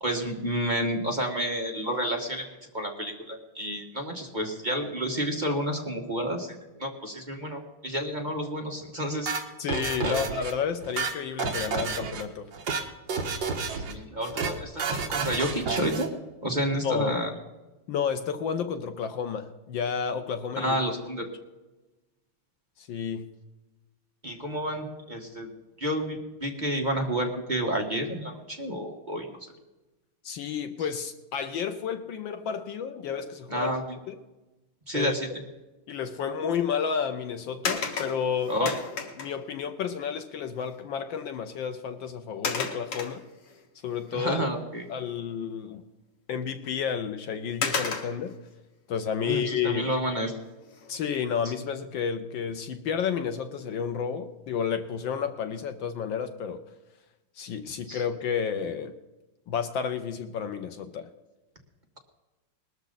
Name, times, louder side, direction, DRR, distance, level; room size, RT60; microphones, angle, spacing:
voice 1, 0.0-2.5 2.7-9.3 10.0-10.2 13.8-16.1 16.4-17.3 20.6-21.3 24.2-25.5 25.8-29.5 33.5-33.8 34.9-35.3 38.5-38.8 44.1-44.9 49.2-50.3 57.9-58.0, equal, 25° right, 1 dB, 1.5 m, -30 dB
sound 1, 9.3-10.5 10.8-12.2 12.5-12.8 13.1-13.9 14.2-14.5 14.8-16.1, right 5 dB, 60° right, 2.0 m, -30 dB
voice 2, 9.6-12.5 16.8-17.2 17.9-20.8 22.8-23.2 30.2-33.7 34.1-34.2 34.9-35.1 35.9-38.7 39.2-43.2 43.8-44.4 44.9-45.8 46.3-48.4 48.9-49.9 50.9-56.6 57.4-58.9 59.5-61.1, left 7 dB, 70° left, 9 dB, 1.4 m, -31 dB
sound 2, 37.7-39.5 40.7-40.8 41.2-41.4 42.4-43.6 44.1-44.2 46.6-46.7 47.6-48.4 50.6-51.0 51.5-51.6, left 5 dB, 90° left, 2.7 m, -32 dB
20.0 x 13.0 x 4.0 m, 1.1 s
omnidirectional pair, 2.4 m